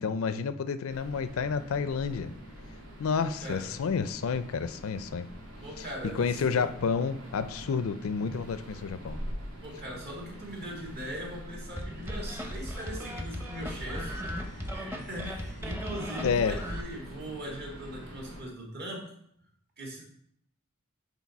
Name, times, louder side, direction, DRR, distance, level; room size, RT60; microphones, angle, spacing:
voice 1, 0.0-2.3 3.0-5.3 5.8-5.9 6.1-9.2 16.2-16.5, left 6 dB, 70° left, 12 dB, 0.4 m, -30 dB
sound 1, 0.9-18.4, equal, 85° right, 1.8 m, -45 dB
voice 2, 3.2-3.7 5.6-6.7 9.6-19.0 19.8-20.0, equal, 50° right, -1 dB, 1.8 m, -40 dB
sound 2, 11.8-16.8, equal, 10° right, 0.7 m, -36 dB
7.2 x 3.9 x 4.1 m, 0.70 s
head